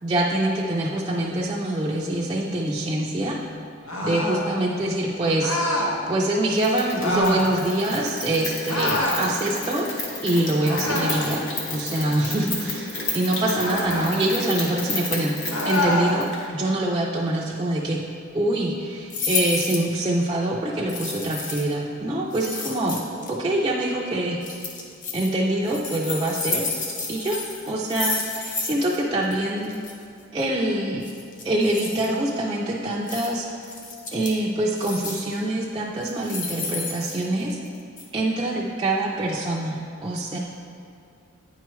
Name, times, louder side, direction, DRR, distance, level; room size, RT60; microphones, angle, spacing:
voice 1, 0.0-3.4 4.0-5.6 6.1-9.9 10.2-18.1 18.3-23.0 23.3-24.4 25.1-26.7 27.1-29.7 30.3-31.0 31.4-33.5 34.1-37.6 38.1-40.4, right 1 dB, 20° right, -5 dB, 0.4 m, -25 dB
sound 1, 3.9-4.4 5.4-5.9 7.0-7.5 8.7-9.2 10.6-11.3 13.5-14.1 15.5-16.1, left 1 dB, 85° left, 1.0 m, -25 dB
Rain, 6.6-16.5, left 2 dB, 60° left, 1.1 m, -32 dB
sound 2, 19.1-19.9 20.9-21.7 22.3-23.3 24.4-25.3 25.6-29.0 29.2-29.3 29.6-29.9 31.0-32.1 33.1-33.3 33.6-34.4 34.8-35.3 36.0-37.7 38.0-38.1, left 4 dB, 40° left, 0.7 m, -31 dB
9.4 x 4.6 x 3.1 m, 2.4 s
head